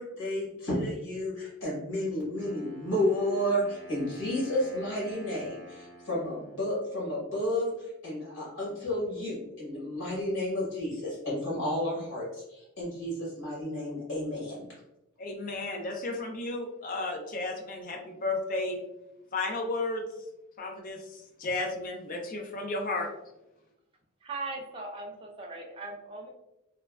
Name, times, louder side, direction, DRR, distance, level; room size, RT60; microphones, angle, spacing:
voice 1, 0.0-14.5, left 1 dB, 60° left, -6 dB, 1.2 m, -31 dB
Wind instrument woodwind instrument, 2.4-7.3, equal, 60° right, 0.7 m, -50 dB
voice 2, 15.2-18.8 19.3-20.1 20.6-23.1, left 2 dB, 40° left, 3 dB, 0.4 m, -33 dB
voice 3, 24.2-26.3, right 3 dB, 25° right, 0 dB, 0.4 m, -39 dB
3.3 x 2.1 x 2.3 m, 0.93 s
head